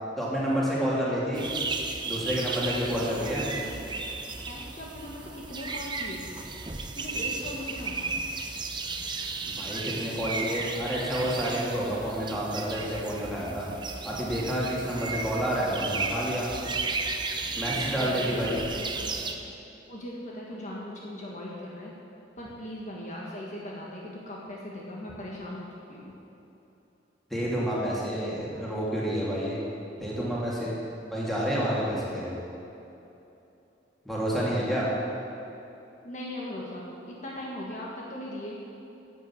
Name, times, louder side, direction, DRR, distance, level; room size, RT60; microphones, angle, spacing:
voice 1, 0.2-1.5 2.1-3.5 9.6-13.7 14.0-16.5 17.6-18.6 27.3-29.6 30.0-30.8 31.1-32.3 34.0-34.9, equal, ahead, -7 dB, 2.9 m, -29 dB
sound 1, 1.3-19.3, right 4 dB, 25° right, 0.7 m, -34 dB
voice 2, 3.6-4.1 4.5-6.3 6.9-8.1 17.5-17.7 18.0-19.5 19.9-21.9 22.4-26.1 36.0-38.6, left 1 dB, 45° left, -4 dB, 1.5 m, -39 dB
11.0 x 8.1 x 7.8 m, 2.9 s
head